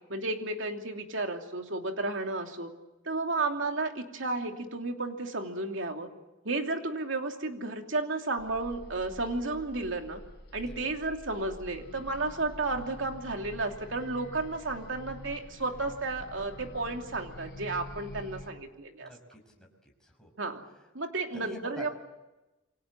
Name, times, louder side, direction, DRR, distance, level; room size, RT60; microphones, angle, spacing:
voice 1, 0.1-2.7 3.0-6.1 6.4-10.2 10.5-19.1 20.4-20.6 20.9-21.9, right 3 dB, 70° right, 3 dB, 3.0 m, -33 dB
sound 1, 8.4-18.5, left 1 dB, 55° left, 3.8 m, -47 dB
voice 2, 19.0-20.3 21.3-21.9, equal, 5° left, 0 dB, 5.7 m, -47 dB
28.5 x 24.5 x 7.6 m, 1.1 s
head